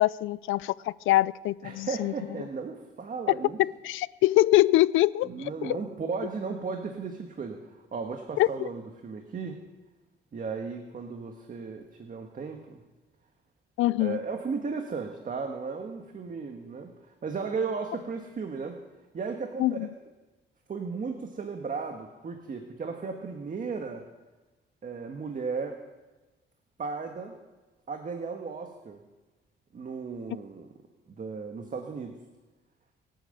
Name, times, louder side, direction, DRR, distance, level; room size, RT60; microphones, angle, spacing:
voice 1, 0.0-2.1 3.6-5.8 8.4-8.5 13.8-14.2 19.6-19.9, left 16 dB, 85° left, 0.5 m, -24 dB
voice 2, 1.6-3.6 5.2-9.6 10.3-12.8 14.0-18.8 19.1-19.8 20.7-24.0 24.8-25.8 26.8-27.4 27.9-29.0 29.7-30.7 31.2-32.1, right 5 dB, 45° right, 1.7 m, -35 dB
23.0 x 9.3 x 6.7 m
cardioid pair, 90°, 20 cm